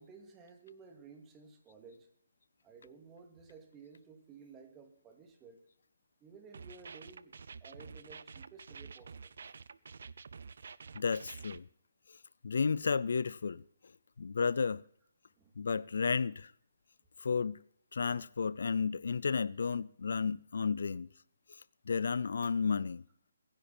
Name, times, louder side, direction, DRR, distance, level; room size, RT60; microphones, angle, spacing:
voice 1, 0.0-2.1 2.6-5.7 6.2-7.3 7.6-9.3 15.4-15.5, right 5 dB, 15° right, 2.6 m, -55 dB
sound 1, 6.5-11.6, right 5 dB, 70° right, 0.6 m, -49 dB
voice 2, 10.9-11.7 12.4-13.6 14.2-14.8 15.6-16.5 17.2-17.6 17.9-21.1 21.9-23.0, left 5 dB, 70° left, 0.5 m, -32 dB
23.0 x 10.5 x 4.4 m
hypercardioid pair, 155°, 0 cm